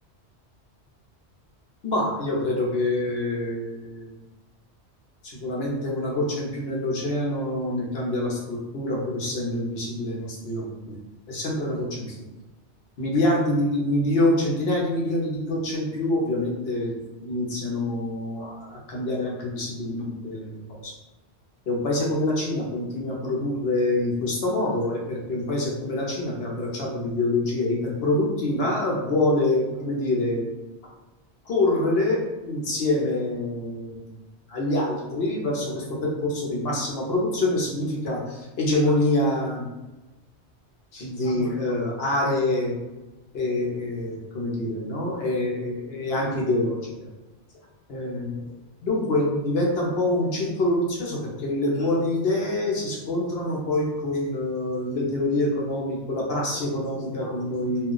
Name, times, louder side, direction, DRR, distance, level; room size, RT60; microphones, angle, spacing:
voice 1, 1.8-4.1 5.2-11.0 11.3-12.2 13.0-16.9 17.2-20.9 21.7-30.4 31.5-34.1 34.5-39.7 40.9-42.8 43.3-46.9 47.9-48.5 48.8-57.9, left 1 dB, 65° left, -3 dB, 0.9 m, -26 dB
2.3 x 2.2 x 3.7 m, 1.1 s
omnidirectional pair, 1.2 m